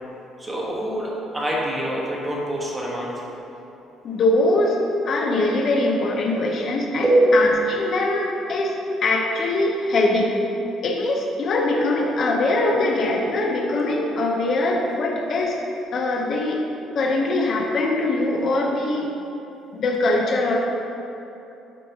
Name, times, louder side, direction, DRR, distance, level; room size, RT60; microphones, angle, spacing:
voice 1, 0.4-3.2 7.0-7.3 7.8-8.0, right 1 dB, 15° right, -4 dB, 1.2 m, -24 dB
voice 2, 4.0-4.8 5.1-7.1 7.3-10.3 10.8-15.6 15.9-16.6 16.9-19.1 19.7-20.6, left 2 dB, 45° left, -1 dB, 0.8 m, -22 dB
9.8 x 5.2 x 2.8 m, 3.0 s
cardioid pair, 135°, 0 cm